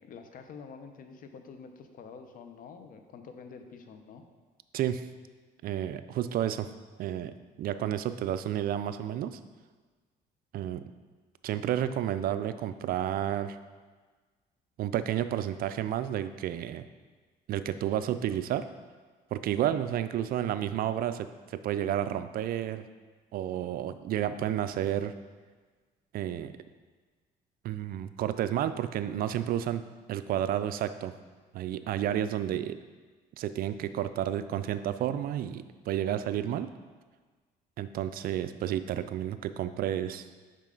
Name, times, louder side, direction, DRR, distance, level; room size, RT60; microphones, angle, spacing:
voice 1, 0.0-4.2, left 5 dB, 55° left, 7 dB, 0.7 m, -47 dB
voice 2, 4.7-5.1 5.6-6.7 7.0-9.4 10.5-10.8 11.4-13.6 14.8-16.9 17.5-18.7 19.3-22.9 23.3-25.1 26.1-26.5 27.6-29.8 30.1-31.1 31.5-32.8 33.4-36.7 37.8-40.2, right 11 dB, 60° right, 12 dB, 0.4 m, -31 dB
7.3 x 5.3 x 3.8 m, 1.4 s
cardioid pair, 110°, 17 cm